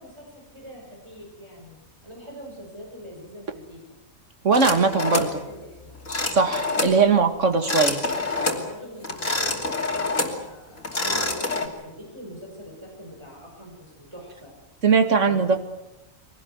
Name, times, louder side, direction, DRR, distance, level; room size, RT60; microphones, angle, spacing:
voice 1, 0.0-1.8 2.0-3.8 4.6-5.0 5.3-6.0 8.4-14.5 15.2-15.6, equal, 20° right, -1 dB, 6.2 m, -42 dB
voice 2, 4.4-5.3 6.3-8.0 14.8-15.6, right 4 dB, 65° right, 7 dB, 2.3 m, -20 dB
sound 1, 4.5-5.4 6.1-7.0 7.5-8.6 9.0-10.4 10.8-11.7, left 3 dB, 70° left, 3.5 m, -26 dB
24.0 x 18.5 x 9.4 m, 0.93 s
omnidirectional pair, 1.4 m